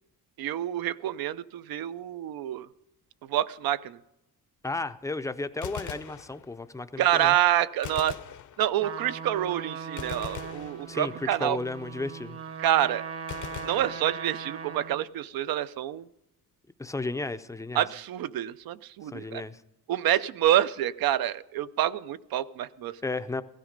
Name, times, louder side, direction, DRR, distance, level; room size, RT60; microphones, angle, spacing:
voice 1, 0.4-2.7 3.2-4.0 7.0-8.2 8.6-11.6 12.6-13.0 13.6-16.1 17.7-19.4 19.9-23.0, right 12 dB, 80° right, 15 dB, 0.6 m, -27 dB
voice 2, 4.6-7.4 10.9-12.4 16.8-17.8 19.0-19.6 23.0-23.4, left 2 dB, 10° left, 11 dB, 0.4 m, -33 dB
Gunshot gunfire, 5.6-6.8 7.8-9.1 10.0-11.4 13.3-14.6, left 10 dB, 55° left, 0.7 m, -42 dB
Trumpet, 8.8-15.1, right 6 dB, 40° right, 0.9 m, -39 dB
16.0 x 13.0 x 5.2 m, 0.86 s
cardioid pair, 145°, 35 cm